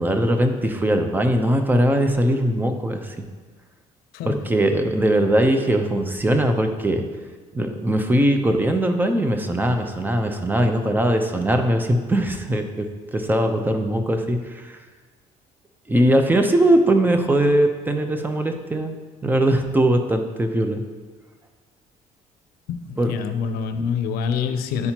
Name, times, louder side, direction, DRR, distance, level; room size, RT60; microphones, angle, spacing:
voice 1, 0.0-3.2 4.2-7.0 7.5-12.9 13.1-14.8 15.9-19.0 19.2-20.8 23.0-23.1, right 1 dB, 10° right, 6 dB, 0.7 m, -20 dB
voice 2, 4.1-4.5 22.7-24.9, left 6 dB, 85° left, 8 dB, 0.6 m, -26 dB
10.5 x 4.2 x 2.9 m, 1.4 s
cardioid pair, 100°, 15 cm